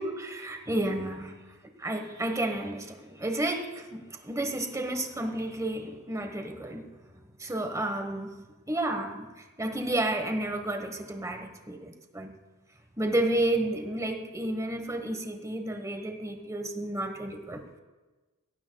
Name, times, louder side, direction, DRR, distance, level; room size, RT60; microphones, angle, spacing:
voice 1, 0.0-1.4 1.8-6.9 7.4-8.4 8.7-9.3 9.6-12.3 13.0-17.8, right 1 dB, 15° right, 5 dB, 1.3 m, -31 dB
21.5 x 17.0 x 2.3 m, 1.2 s
head